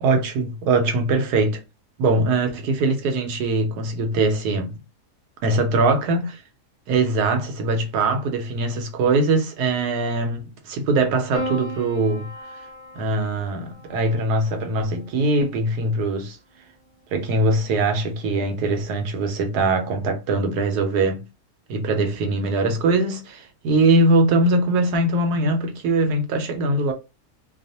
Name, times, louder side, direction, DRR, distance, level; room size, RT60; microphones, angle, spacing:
voice 1, 0.0-1.6 2.0-4.7 5.4-6.4 6.9-12.3 13.0-16.4 17.1-21.2 21.7-26.9, right 2 dB, 85° right, 1.2 m, -22 dB
Piano, 11.3-15.8 17.0-17.7, equal, 30° right, 0.7 m, -37 dB
2.9 x 2.0 x 2.7 m
omnidirectional pair, 1.7 m